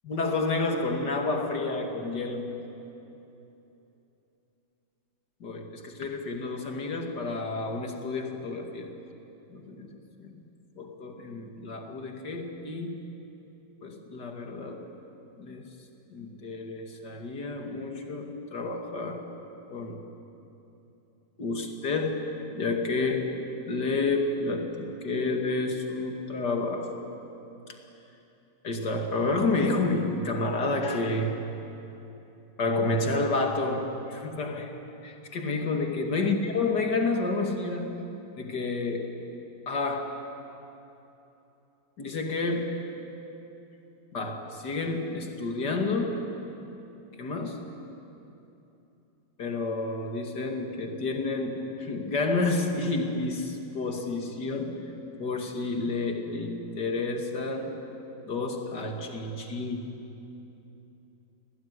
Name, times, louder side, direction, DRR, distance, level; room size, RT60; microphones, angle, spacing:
voice 1, 0.0-2.6 5.4-8.9 9.5-10.4 10.8-13.0 13.8-14.9 15.4-15.7 16.1-19.3 19.7-20.0 21.4-23.3 23.6-27.2 28.6-31.4 32.6-34.7 35.0-38.0 38.4-39.1 39.7-40.2 42.0-42.9 44.1-46.3 47.2-47.6 49.4-54.9 55.2-57.8 58.2-59.9, left 3 dB, 70° left, 3 dB, 3.0 m, -30 dB
29.5 x 19.5 x 9.7 m, 3.0 s
omnidirectional pair, 1.9 m